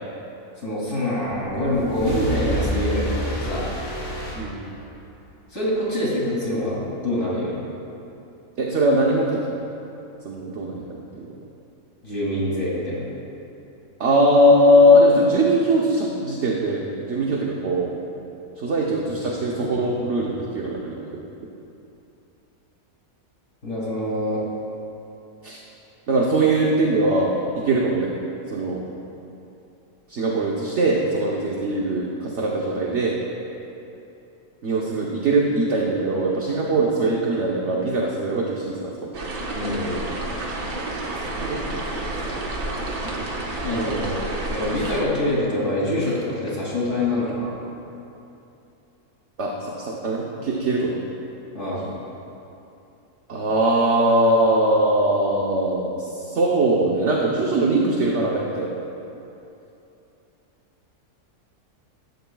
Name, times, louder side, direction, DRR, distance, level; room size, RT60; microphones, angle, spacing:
voice 1, 0.6-3.7 5.5-7.6 12.0-13.1 23.6-24.4 39.5-40.0 43.6-44.2 44.5-47.6 51.5-51.9, left 1 dB, 55° left, -6 dB, 3.1 m, -25 dB
sound 1, 1.5-5.1, right 1 dB, 40° left, 3.0 m, -29 dB
voice 2, 8.6-9.4 10.2-11.3 14.0-17.9 18.6-21.1 25.4-25.6 26.1-27.3 27.6-28.1 28.5-28.9 30.1-33.2 34.6-39.1 41.1-41.8 49.4-51.0 53.3-58.7, right 1 dB, 50° right, -2 dB, 1.2 m, -21 dB
sound 2, 39.1-45.0, right 2 dB, 75° right, 1.9 m, -30 dB
15.0 x 15.0 x 2.4 m, 2.8 s
omnidirectional pair, 1.6 m